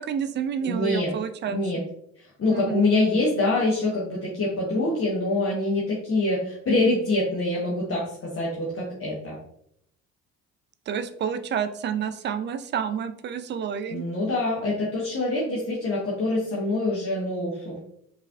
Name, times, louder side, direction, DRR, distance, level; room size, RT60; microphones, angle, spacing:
voice 1, 0.0-1.6 2.5-2.9 10.9-14.0, right 8 dB, 25° right, 10 dB, 0.4 m, -29 dB
voice 2, 0.6-1.1 1.5-1.8 2.4-9.4 13.9-17.8, left 2 dB, 30° left, -6 dB, 1.3 m, -25 dB
5.4 x 2.9 x 2.5 m, 0.69 s
figure-of-eight pair, 50°, 42 cm